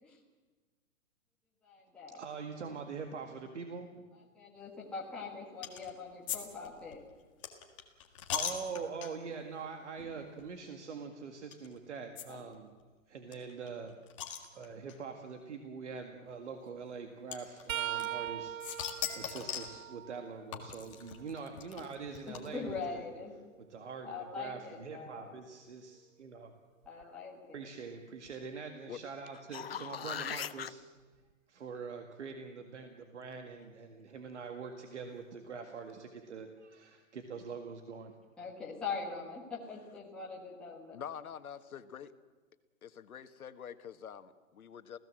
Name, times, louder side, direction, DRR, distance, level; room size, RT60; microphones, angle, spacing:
voice 1, 1.6-2.2 4.3-7.0 12.3-12.4 22.3-23.4 24.0-25.3 26.8-27.6 38.4-41.0, left 4 dB, ahead, -6 dB, 1.4 m, -42 dB
voice 2, 2.1-4.1 8.3-12.7 13.1-14.0 14.5-23.0 23.7-26.5 26.9-27.1 27.5-30.8 31.5-38.1, right 5 dB, 55° right, 5 dB, 1.9 m, -44 dB
sound 1, 5.6-5.9 6.3-9.4 10.0-10.1 10.4-10.5 11.5-11.7 12.2-12.3 12.5-12.6 12.8-12.9 13.3-15.0 15.9-16.0 17.3-18.3 18.6-19.8 20.5-22.8, left 9 dB, 20° left, 1.7 m, -40 dB
sound 2, 17.7-21.5 22.0-23.9 26.8-27.0 28.3-28.4 29.8-29.9, right 12 dB, 70° right, 0.6 m, -42 dB
sound 3, 29.3-30.7 35.5-35.6, left 8 dB, 45° left, 0.6 m, -39 dB
voice 3, 40.9-42.1 42.8-45.0, left 8 dB, 85° left, 10 dB, 1.6 m, -46 dB
28.0 x 16.5 x 7.7 m, 1.3 s
hypercardioid pair, 180°, 42 cm